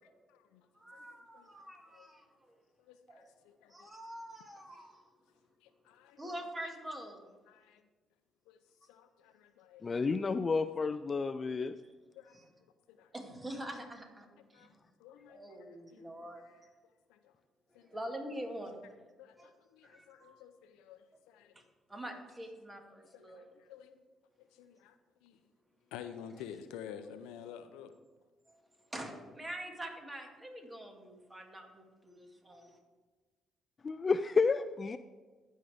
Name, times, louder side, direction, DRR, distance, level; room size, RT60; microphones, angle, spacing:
voice 1, 0.3-0.6 0.9-1.7 1.9-2.1 2.8-3.9 5.6-6.3 7.5-7.8 8.5-8.6 8.9-10.1 12.2-12.4 12.9-13.1 14.5-14.7 15.0-16.6 17.1-17.3 17.7-17.9 19.2-21.5 23.1-24.0 24.5-24.9 25.2-25.4 25.9-27.9, left 8 dB, 85° left, 10 dB, 0.5 m, -51 dB
voice 2, 0.8-2.5 3.1-3.3 3.7-5.0 6.2-7.3 12.3-12.5 13.1-14.3 14.5-14.7 15.3-16.4 17.8-18.8 19.4-19.5 19.8-20.4 21.9-23.5 28.5-32.8, right 1 dB, 20° right, 3 dB, 2.0 m, -45 dB
voice 3, 9.8-11.8 33.8-35.0, left 4 dB, 40° left, 12 dB, 0.3 m, -30 dB
15.0 x 5.4 x 3.5 m, 1.4 s
supercardioid pair, 60°, 0 cm